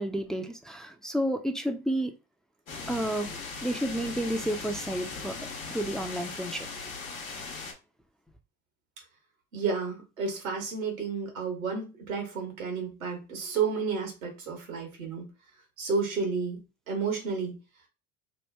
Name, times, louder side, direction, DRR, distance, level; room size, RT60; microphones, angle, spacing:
voice 1, 0.0-2.1 2.9-3.3 3.6-5.3 5.7-6.7, right 1 dB, ahead, 0.3 m, -31 dB
sound 1, 2.7-7.7, left 4 dB, 85° left, 0.9 m, -39 dB
voice 2, 9.5-15.3 15.8-16.6 16.9-17.6, right 5 dB, 90° right, 1.1 m, -31 dB
3.0 x 2.2 x 3.3 m
hypercardioid pair, 65°, 40 cm